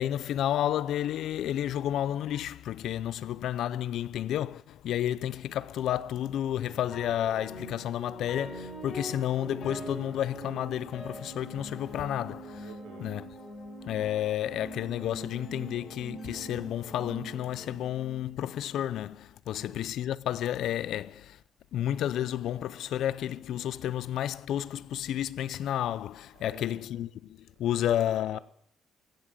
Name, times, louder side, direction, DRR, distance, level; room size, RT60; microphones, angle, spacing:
voice 1, 0.0-12.6 13.0-13.3 13.8-21.4 21.7-28.4, left 11 dB, 80° left, 0.5 m, -31 dB
sound 1, 6.6-18.9, right 1 dB, 60° left, 5.9 m, -43 dB
voice 2, 12.5-13.1 19.6-19.8 26.3-27.0 27.5-28.4, right 9 dB, 90° right, 1.7 m, -52 dB
15.5 x 7.4 x 7.6 m
cardioid pair, 90°, 0 cm